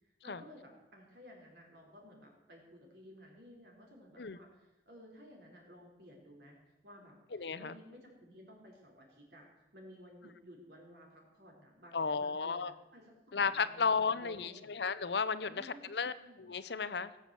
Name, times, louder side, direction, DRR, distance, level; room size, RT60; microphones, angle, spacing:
voice 1, 0.0-14.7 15.4-16.4, equal, 65° right, 0 dB, 4.5 m, -56 dB
voice 2, 7.3-7.8 11.9-12.7 13.3-16.1 16.4-17.1, left 5 dB, 65° left, 14 dB, 0.7 m, -34 dB
18.5 x 7.9 x 7.8 m, 0.99 s
head